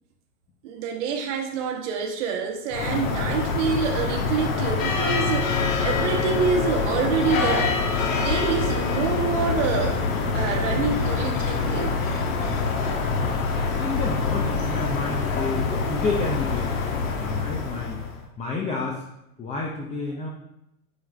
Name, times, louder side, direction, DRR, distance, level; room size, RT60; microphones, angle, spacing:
voice 1, 0.6-7.8 8.1-10.0 10.3-12.1, right 6 dB, 50° right, 2 dB, 1.5 m, -27 dB
sound 1, 2.7-18.2, left 4 dB, 60° left, 1.6 m, -25 dB
voice 2, 13.8-18.0 18.4-19.0 19.4-20.3, left 3 dB, 15° left, -1 dB, 0.7 m, -30 dB
9.5 x 4.7 x 3.3 m, 0.84 s
hypercardioid pair, 115°, 46 cm